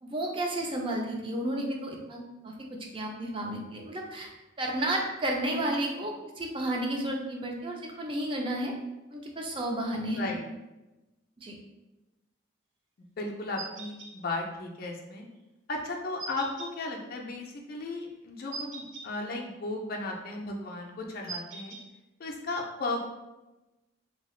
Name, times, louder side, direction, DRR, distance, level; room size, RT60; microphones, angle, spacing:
voice 1, 0.0-2.5 2.9-4.3 4.6-8.7 9.1-10.3 11.4-11.5, right 1 dB, 25° right, 0 dB, 0.4 m, -32 dB
voice 2, 13.2-15.3 15.7-21.8 22.2-23.0, left 2 dB, 50° left, 0 dB, 0.4 m, -35 dB
sound 1, 13.6-14.1 16.2-16.7 18.5-19.1 21.3-21.8, right 4 dB, 75° right, 0.5 m, -40 dB
2.7 x 2.3 x 3.1 m, 1.0 s
head